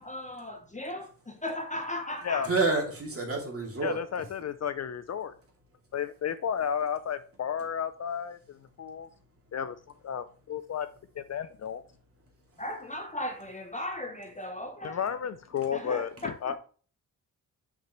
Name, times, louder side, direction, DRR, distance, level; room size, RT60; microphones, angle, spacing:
voice 1, 0.0-2.5 12.6-15.0 15.7-16.3, left 1 dB, 20° left, 0.8 m, -36 dB
voice 2, 2.4-4.0 9.0-9.5 12.3-12.6 16.2-16.3, right 3 dB, 35° right, 2.5 m, -30 dB
voice 3, 3.8-5.3 5.9-9.1 9.5-9.8 10.0-10.9 11.1-11.8 14.8-16.6, left 8 dB, 45° left, 0.4 m, -32 dB
6.0 x 5.8 x 3.0 m
cardioid pair, 80°, 37 cm